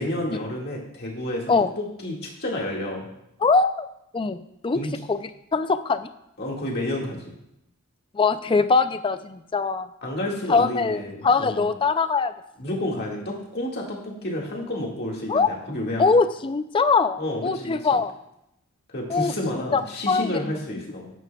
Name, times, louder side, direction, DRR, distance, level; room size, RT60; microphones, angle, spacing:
voice 1, 0.0-3.1 4.7-4.9 6.4-7.3 10.0-11.7 12.6-16.1 17.2-17.8 18.9-21.1, left 1 dB, 45° left, -2 dB, 1.9 m, -30 dB
voice 2, 3.4-3.9 4.1-4.8 5.1-6.1 8.1-9.9 10.5-12.3 15.3-15.5 16.0-18.1 19.1-19.3 19.7-19.8 20.1-20.5, left 4 dB, 25° left, 12 dB, 0.3 m, -22 dB
10.5 x 9.2 x 2.3 m, 0.83 s
head